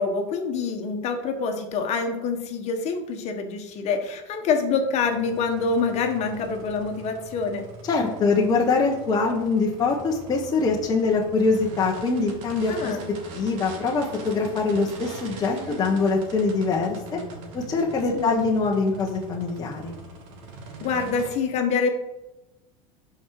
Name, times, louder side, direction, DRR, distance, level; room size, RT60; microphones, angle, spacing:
voice 1, 0.0-7.6 12.7-13.1 18.1-18.5 20.8-21.9, left 5 dB, 40° left, 5 dB, 1.5 m, -26 dB
sound 1, 4.7-21.3, right 3 dB, 65° right, 2.3 m, -42 dB
voice 2, 7.8-13.0 13.3-17.2 17.5-19.9, left 4 dB, 20° left, -1 dB, 1.2 m, -23 dB
11.5 x 5.0 x 4.8 m, 1.0 s
supercardioid pair, 140°, 17 cm